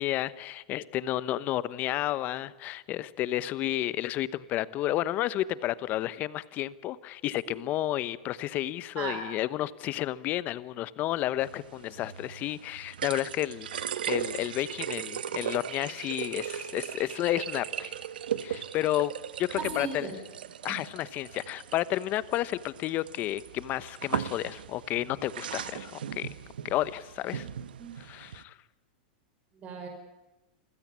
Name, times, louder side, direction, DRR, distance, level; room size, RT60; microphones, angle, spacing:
voice 1, 0.0-18.0 18.4-19.1 19.4-20.1 20.6-26.3 26.6-27.5 28.0-28.6, left 14 dB, 35° left, 17 dB, 1.0 m, -31 dB
sound 1, 11.4-28.4, right 9 dB, 90° right, 1.3 m, -38 dB
voice 2, 19.6-20.2 27.8-27.9 29.6-29.9, right 4 dB, 30° right, 3 dB, 5.3 m, -36 dB
27.5 x 16.0 x 9.7 m, 1.0 s
supercardioid pair, 140°, 5 cm